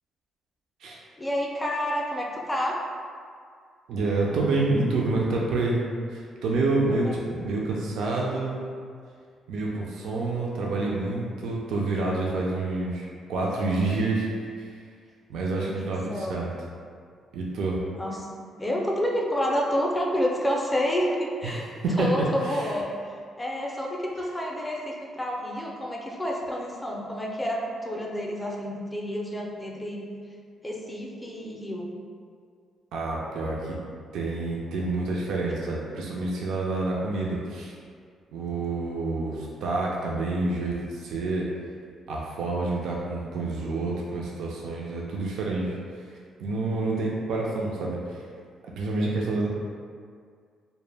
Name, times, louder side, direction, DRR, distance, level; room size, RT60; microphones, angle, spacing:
voice 1, 1.2-2.8 6.9-7.2 15.5-16.4 18.0-18.3 18.6-21.7 22.0-30.1 30.6-31.9, equal, 15° left, -2 dB, 0.4 m, -29 dB
voice 2, 3.9-5.8 6.1-8.6 9.5-14.3 14.6-14.7 15.3-16.5 17.3-17.8 21.4-22.7 32.9-33.8 34.1-37.7 38.3-41.5 42.1-45.8 46.1-48.2 48.8-49.5, right 2 dB, 75° right, -3 dB, 0.3 m, -28 dB
2.1 x 2.0 x 3.2 m, 2.1 s
cardioid pair, 90°, 0 cm